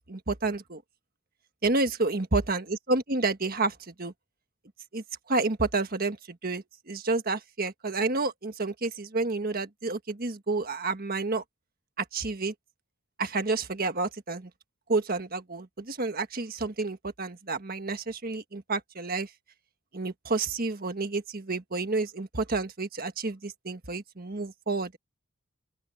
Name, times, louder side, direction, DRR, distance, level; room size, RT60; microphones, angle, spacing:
voice 1, 0.1-0.8 1.6-4.1 4.9-11.4 12.0-12.5 13.2-14.5 14.9-19.3 19.9-25.0, right 3 dB, 45° right, 1.5 m, -30 dB
open air
head